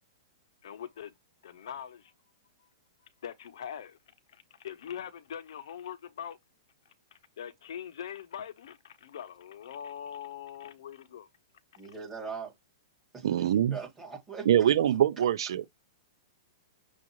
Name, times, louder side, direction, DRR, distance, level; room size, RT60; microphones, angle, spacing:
voice 1, 0.6-1.1 1.4-2.1 2.6-2.7 3.2-4.0 4.3-6.4 7.1-11.3, left 9 dB, 70° left, 0.7 m, -42 dB
voice 2, 11.8-12.5 13.1-14.5, right 5 dB, 10° right, 2.0 m, -41 dB
voice 3, 13.2-13.8 14.5-15.7, right 10 dB, 65° right, 0.5 m, -24 dB
6.2 x 2.4 x 2.9 m
hypercardioid pair, 160°, 3 cm